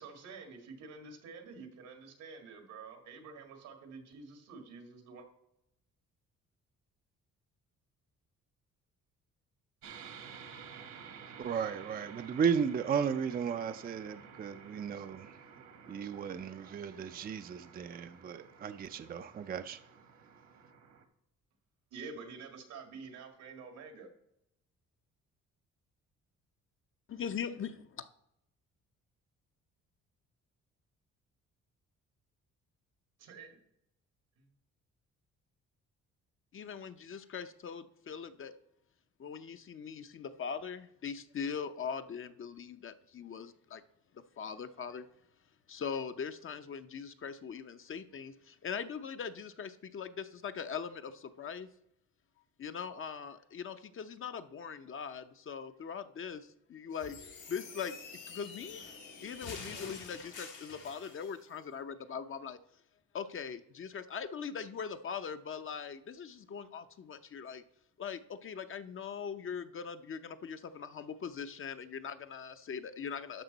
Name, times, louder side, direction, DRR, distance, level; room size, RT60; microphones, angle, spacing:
voice 1, 0.0-5.3 21.9-24.1 33.2-33.6 34.4-34.5, right 4 dB, 85° right, 1.9 m, -48 dB
sound 1, 9.8-21.0, right 6 dB, 65° right, 1.3 m, -52 dB
voice 2, 11.4-15.4 15.9-19.8, right 7 dB, 30° right, 0.4 m, -35 dB
voice 3, 27.1-28.1 36.5-38.5 39.2-43.8 44.1-45.1 45.7-51.7 52.6-58.0 58.3-58.8 59.2-62.6 63.1-67.6 68.0-73.4, left 6 dB, 45° left, 0.7 m, -41 dB
sound 2, 56.9-61.4, left 5 dB, 90° left, 2.4 m, -47 dB
12.5 x 5.2 x 4.0 m
cardioid pair, 90°, 30 cm